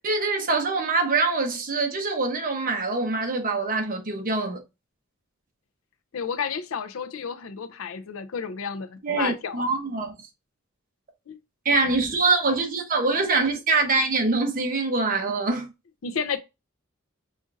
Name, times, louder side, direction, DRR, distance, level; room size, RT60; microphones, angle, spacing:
voice 1, 0.0-4.6 9.0-10.1 11.6-15.7, right 3 dB, 45° right, 0.9 m, -24 dB
voice 2, 6.1-9.6 11.3-11.4 16.0-16.4, left 6 dB, 85° left, 0.5 m, -31 dB
5.0 x 2.5 x 2.5 m
head